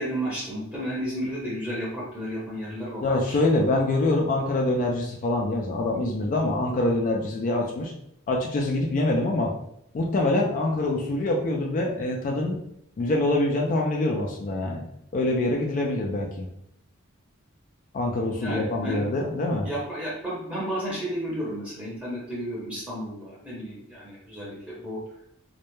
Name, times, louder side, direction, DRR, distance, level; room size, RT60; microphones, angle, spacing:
voice 1, 0.0-3.4 18.4-19.0 19.6-25.0, equal, 5° right, -7 dB, 0.7 m, -32 dB
voice 2, 3.0-7.9 8.3-9.5 9.9-12.6 13.0-14.8 15.1-16.5 17.9-19.7, left 2 dB, 40° left, 0 dB, 0.3 m, -25 dB
2.2 x 2.0 x 2.9 m, 0.75 s
head